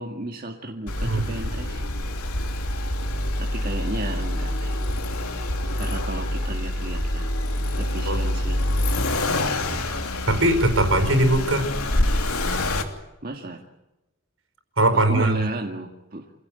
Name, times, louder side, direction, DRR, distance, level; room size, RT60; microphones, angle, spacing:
voice 1, 0.0-1.8 3.4-4.8 5.8-7.4 7.8-8.6 13.2-13.6 15.1-16.3, right 1 dB, 40° right, 1 dB, 2.0 m, -33 dB
Accelerating revving vroom, 0.9-12.8, left 1 dB, 90° left, 3.0 m, -26 dB
voice 2, 10.3-11.7 14.8-15.5, right 1 dB, 65° right, 7 dB, 5.0 m, -20 dB
27.0 x 17.0 x 9.2 m, 0.96 s
head